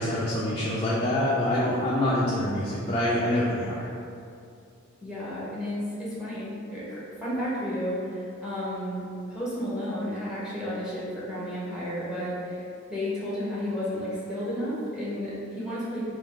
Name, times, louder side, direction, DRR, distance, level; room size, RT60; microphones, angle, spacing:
voice 1, 0.0-3.9, left 1 dB, 25° left, -7 dB, 0.4 m, -26 dB
voice 2, 5.0-16.0, equal, 5° right, -8 dB, 0.7 m, -32 dB
3.5 x 2.6 x 3.7 m, 2.5 s
head